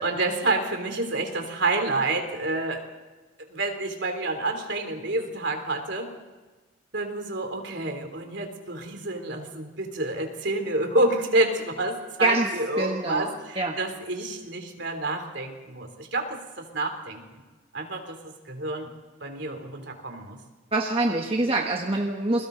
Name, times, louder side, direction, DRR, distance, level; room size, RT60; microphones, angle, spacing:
voice 1, 0.0-2.8 3.5-6.1 6.9-17.4 17.7-18.9 19.2-20.4, right 2 dB, 60° right, 4 dB, 3.4 m, -28 dB
voice 2, 12.8-13.2 13.6-13.7 20.7-22.5, right 2 dB, 30° right, 1 dB, 1.4 m, -25 dB
29.5 x 22.0 x 4.0 m, 1.3 s
head